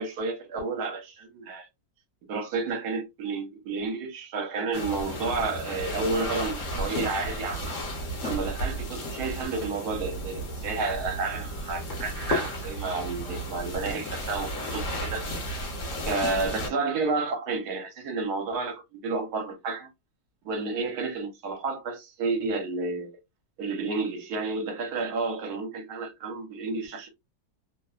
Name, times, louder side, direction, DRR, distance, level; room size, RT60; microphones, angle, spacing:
voice 1, 0.0-1.7 2.3-7.7 8.2-15.7 16.1-19.9 20.4-23.1 23.6-27.1, right 3 dB, 75° right, 1.2 m, -31 dB
sound 1, 4.7-16.7, equal, 55° left, 1.0 m, -33 dB
2.9 x 2.0 x 2.3 m
omnidirectional pair, 1.8 m